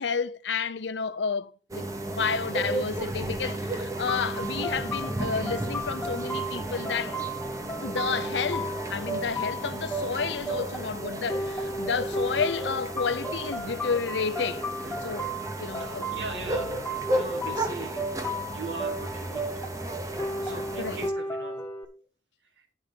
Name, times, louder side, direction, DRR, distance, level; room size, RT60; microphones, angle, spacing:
voice 1, 0.0-7.2 7.8-14.7 15.0-15.2 15.6-16.1 20.8-21.0, left 5 dB, 80° left, 0.7 m, -31 dB
sound 1, 1.7-21.1, right 1 dB, 20° right, 0.9 m, -34 dB
sound 2, 4.1-21.8, right 1 dB, 10° left, 1.1 m, -35 dB
voice 2, 14.8-15.2 15.8-16.7 17.1-19.7 20.0-21.7 22.6-22.7, right 3 dB, 85° right, 1.9 m, -41 dB
9.8 x 5.4 x 5.4 m
head